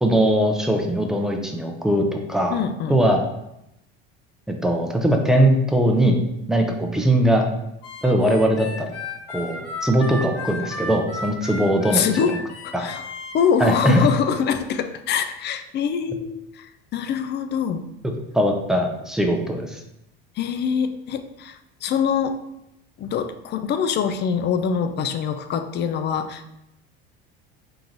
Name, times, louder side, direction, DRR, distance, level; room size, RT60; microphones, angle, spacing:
voice 1, 0.0-2.6 2.9-3.2 4.5-6.2 6.5-7.5 8.0-8.9 9.3-12.4 12.7-12.9 13.6-14.1 18.3-19.8, right 1 dB, ahead, 2 dB, 0.7 m, -20 dB
voice 2, 2.5-3.0 11.9-13.0 13.3-17.9 20.4-22.4 23.0-26.5, left 7 dB, 35° left, 9 dB, 0.5 m, -24 dB
Harmonica, 7.8-13.4, left 2 dB, 55° left, 1.5 m, -34 dB
3.8 x 2.9 x 3.9 m, 0.84 s
hypercardioid pair, 85°, 30 cm